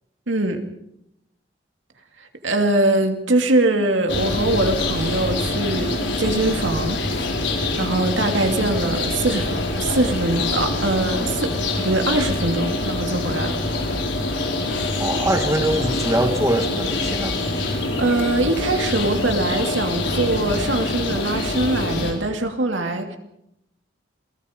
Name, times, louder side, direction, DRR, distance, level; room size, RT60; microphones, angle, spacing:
voice 1, 0.3-0.6 2.4-7.0 7.8-13.6 17.9-23.2, right 2 dB, 85° right, 4 dB, 2.5 m, -22 dB
sound 1, 4.1-22.1, left 2 dB, 75° left, 4.6 m, -25 dB
voice 2, 15.0-17.4 17.7-17.8, right 1 dB, 15° right, 5 dB, 1.6 m, -23 dB
28.0 x 19.5 x 5.2 m, 0.82 s
head